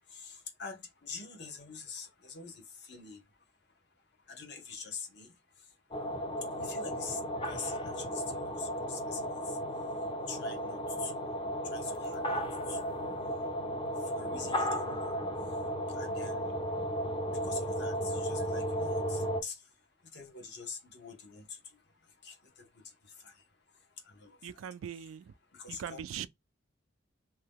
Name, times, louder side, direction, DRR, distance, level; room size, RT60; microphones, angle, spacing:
voice 1, 0.1-3.2 4.3-5.3 6.6-7.2 7.4-9.6 10.3-11.2 11.7-12.4 12.7-12.9 14.0-15.1 15.9-16.5 17.3-19.6 20.1-21.6 22.2-22.7 23.2-23.3 24.0-24.4 25.5-26.0, left 5 dB, 55° left, 0.9 m, -45 dB
sound 1, 5.9-19.4, equal, 25° left, 0.5 m, -34 dB
voice 2, 24.4-25.3 25.7-26.3, right 9 dB, 90° right, 0.3 m, -41 dB
2.8 x 2.2 x 3.3 m
head